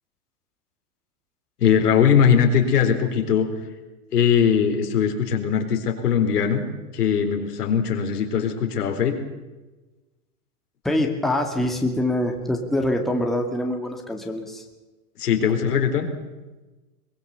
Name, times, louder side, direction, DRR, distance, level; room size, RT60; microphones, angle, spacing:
voice 1, 1.6-3.5 4.1-6.7 6.9-9.2 15.2-16.1, left 7 dB, 90° left, 4 dB, 4.0 m, -20 dB
voice 2, 10.8-14.6, left 1 dB, ahead, 1 dB, 2.2 m, -24 dB
22.5 x 20.5 x 6.9 m, 1.2 s
hypercardioid pair, 135°, 45 cm